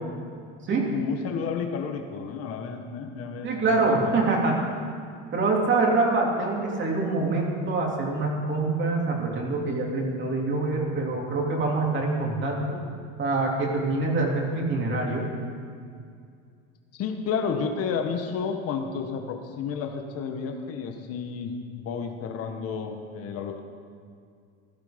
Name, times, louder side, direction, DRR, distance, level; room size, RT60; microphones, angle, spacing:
voice 1, 0.9-4.1 16.9-23.6, left 6 dB, 50° left, 5 dB, 1.4 m, -31 dB
voice 2, 3.4-4.6 5.3-12.8 13.2-15.3, right 3 dB, 35° right, -1 dB, 3.2 m, -25 dB
16.0 x 12.0 x 5.2 m, 2.2 s
supercardioid pair, 115°, 32 cm